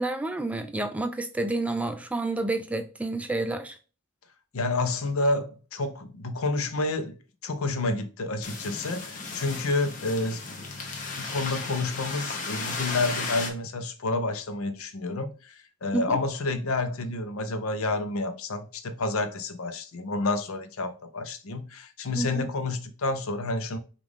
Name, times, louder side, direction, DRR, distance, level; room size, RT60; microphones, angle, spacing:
voice 1, 0.0-3.8 15.9-16.2 22.1-22.5, right 2 dB, 5° right, 0.3 m, -29 dB
voice 2, 4.5-10.6 11.2-23.8, left 2 dB, 80° left, 0.7 m, -29 dB
sound 1, 8.4-13.5, left 3 dB, 35° left, 0.8 m, -35 dB
5.2 x 2.4 x 3.5 m
head